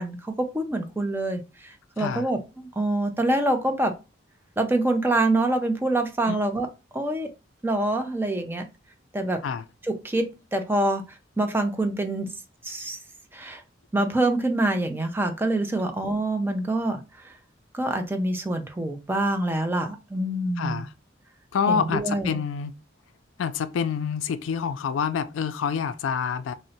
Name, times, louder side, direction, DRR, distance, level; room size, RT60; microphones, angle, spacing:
voice 1, 0.0-3.9 4.6-6.7 6.9-7.3 7.6-8.7 9.1-9.4 9.9-11.0 11.4-12.3 12.6-13.0 13.3-13.6 13.9-17.3 17.7-20.8 21.7-22.4, right 2 dB, 10° right, 0.4 m, -26 dB
voice 2, 20.6-20.9 21.5-22.7 23.4-26.5, left 7 dB, 85° left, 0.3 m, -27 dB
2.6 x 2.1 x 3.9 m
head